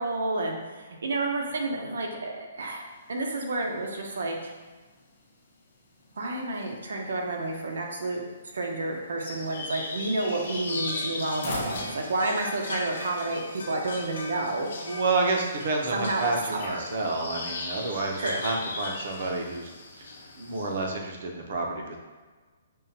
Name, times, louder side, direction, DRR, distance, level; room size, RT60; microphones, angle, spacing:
voice 1, 0.0-2.8 3.1-4.5 6.2-8.2 8.5-14.7 15.9-16.8 18.2-18.4, right 2 dB, 90° right, 1 dB, 0.7 m, -30 dB
sound 1, 2.8-19.8, left 2 dB, 40° left, 0.7 m, -47 dB
sound 2, 9.2-20.9, left 3 dB, 80° left, 0.6 m, -38 dB
voice 2, 14.8-19.7 20.0-20.1 20.4-22.0, right 3 dB, 45° right, 2 dB, 0.5 m, -29 dB
5.4 x 2.2 x 2.7 m, 1.4 s
hypercardioid pair, 180°, 0 cm